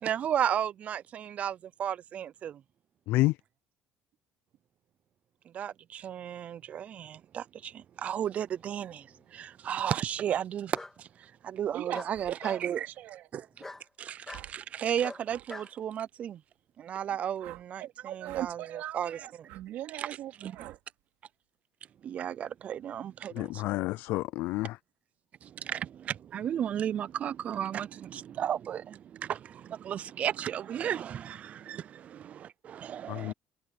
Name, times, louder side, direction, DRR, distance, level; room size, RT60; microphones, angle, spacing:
voice 1, 0.0-2.6 5.5-12.9 13.3-13.5 14.0-16.4 16.8-19.5 20.0-20.1 20.4-20.7 22.0-23.7 25.4-33.3, right 9 dB, 45° right, 0.5 m, -34 dB
Bark, 8.6-9.2 10.7-10.9 11.9-12.6 13.6-13.8 14.3-14.5 15.0-15.7, left 2 dB, 10° left, 1.9 m, -43 dB
sound 1, 10.3-10.5 12.1-12.3 14.3-14.6 15.2-15.5 17.4-17.7 18.2-18.5 19.5-19.6 20.5-20.8, right 19 dB, 90° right, 3.5 m, -48 dB
voice 2, 11.7-13.3 17.8-20.8, right 13 dB, 65° right, 3.2 m, -40 dB
voice 3, 23.3-24.8 33.1-33.3, left 18 dB, 75° left, 0.4 m, -29 dB
cardioid pair, 125°, 3 cm